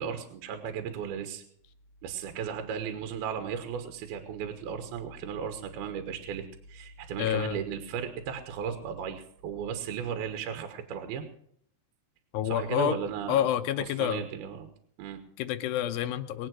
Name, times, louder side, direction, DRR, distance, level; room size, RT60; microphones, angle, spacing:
voice 1, 0.0-1.4 2.0-11.2 12.4-13.4 13.8-14.7 15.0-15.2, right 7 dB, 75° right, 7 dB, 3.1 m, -35 dB
voice 2, 7.2-7.6 12.3-13.0 13.3-14.2 15.4-16.5, left 10 dB, 75° left, 11 dB, 2.3 m, -28 dB
21.5 x 8.7 x 6.4 m, 0.67 s
omnidirectional pair, 4.6 m